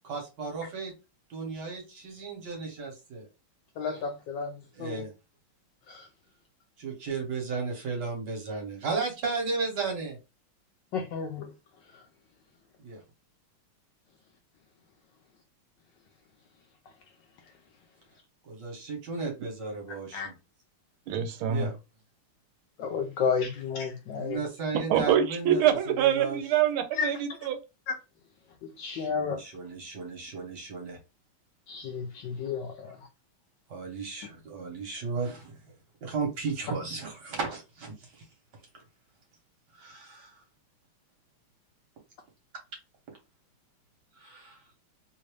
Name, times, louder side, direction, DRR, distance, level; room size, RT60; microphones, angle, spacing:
voice 1, 0.0-0.9 1.3-3.3 4.7-5.1 6.8-10.2 12.8-13.0 18.4-20.3 21.4-21.8 24.1-26.4 28.9-31.0 33.7-35.6 36.0-38.2 39.7-40.3 44.2-44.6, right 4 dB, 55° right, 1.6 m, -34 dB
voice 2, 3.8-5.0 5.9-6.1 10.9-11.5 20.1-20.3 22.8-24.4 27.0-27.1 27.9-28.0 28.8-29.4 31.7-33.0, left 6 dB, 75° left, 1.1 m, -32 dB
voice 3, 21.1-21.7 24.9-27.6, right 9 dB, 80° right, 1.5 m, -25 dB
3.5 x 2.5 x 3.1 m
omnidirectional pair, 2.3 m